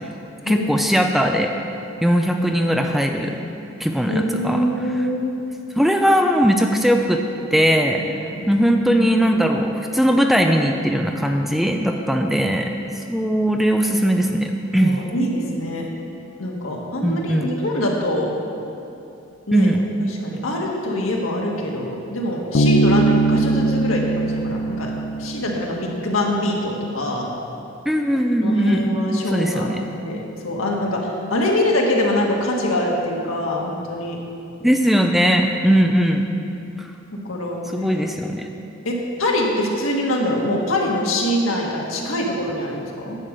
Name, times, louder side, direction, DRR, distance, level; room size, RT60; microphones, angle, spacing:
voice 1, 0.5-1.5 2.0-3.4 3.8-4.7 5.7-7.2 7.5-8.0 8.5-12.7 13.1-15.0 17.0-17.5 19.5-19.8 27.9-29.0 29.3-29.9 34.6-36.2 36.8-36.9 37.7-38.5, equal, ahead, 3 dB, 0.4 m, -19 dB
voice 2, 4.1-5.3 8.3-8.5 14.7-15.8 16.4-18.3 19.5-19.7 20.2-24.9 25.2-27.3 28.4-29.8 30.0-34.2 35.7-35.9 37.2-38.0 38.8-43.2, left 1 dB, 90° left, -1 dB, 1.6 m, -24 dB
Bass guitar, 22.5-26.1, right 2 dB, 65° left, 0.6 m, -20 dB
10.5 x 5.2 x 7.5 m, 2.7 s
head